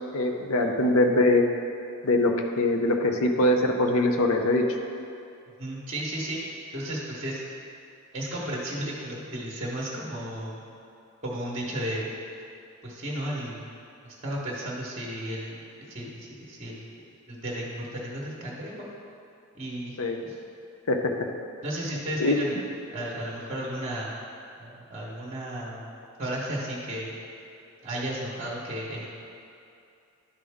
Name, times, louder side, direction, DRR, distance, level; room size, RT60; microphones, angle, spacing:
voice 1, 0.1-1.4 2.0-4.7 20.0-20.2 20.9-21.1 22.2-22.4, left 2 dB, 75° left, 3 dB, 0.7 m, -22 dB
voice 2, 5.6-6.4 6.7-7.4 8.1-10.6 11.2-12.1 12.8-13.6 14.0-15.6 15.9-16.8 17.3-18.9 19.5-20.0 20.2-20.4 21.6-22.6 22.9-24.1 24.6-25.9 26.2-27.1 27.8-29.1, right 1 dB, 30° right, -6 dB, 1.2 m, -33 dB
11.5 x 5.4 x 3.5 m, 2.6 s
head